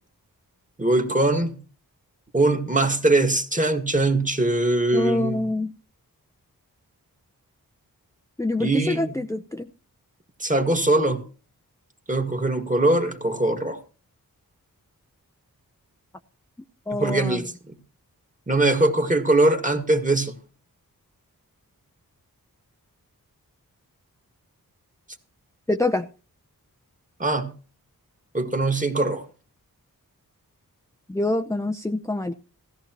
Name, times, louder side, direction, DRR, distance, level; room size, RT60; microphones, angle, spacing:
voice 1, 0.8-1.6 2.3-5.4 8.6-9.2 10.4-11.2 12.1-13.8 16.9-17.7 18.5-20.3 27.2-27.5 28.3-29.3, right 2 dB, 20° right, 1.8 m, -22 dB
voice 2, 4.9-5.7 8.4-9.7 16.9-17.4 25.7-26.1 31.1-32.3, left 2 dB, 10° left, 0.6 m, -25 dB
16.0 x 14.0 x 3.0 m
cardioid pair, 50°, 36 cm